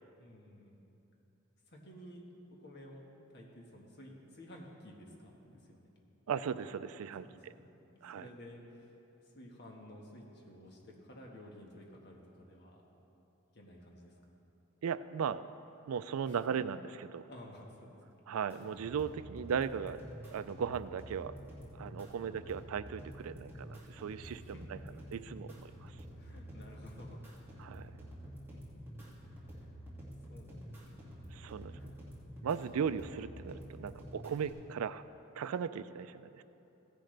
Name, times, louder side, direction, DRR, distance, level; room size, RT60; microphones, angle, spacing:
voice 1, 0.2-0.9 1.7-2.2 2.6-3.0 3.3-5.9 7.2-9.0 9.2-12.8 13.5-14.2 16.2-16.4 17.3-17.9 22.2-22.6 24.2-25.0 26.2-27.2 28.5-28.8 29.5-29.7 30.3-31.0 31.7-32.0, left 1 dB, 50° left, -1 dB, 1.5 m, -53 dB
voice 2, 6.3-7.5 8.0-8.3 14.8-15.4 15.9-17.3 18.3-20.0 20.3-21.3 21.8-24.4 24.7-24.8 25.1-25.9 27.6-28.1 31.3-31.8 32.4-35.0 35.4-36.4, right 7 dB, 85° right, 14 dB, 0.4 m, -37 dB
sound 1, 18.5-34.5, equal, 10° right, 2.1 m, -49 dB
16.0 x 10.0 x 3.3 m, 3.0 s
head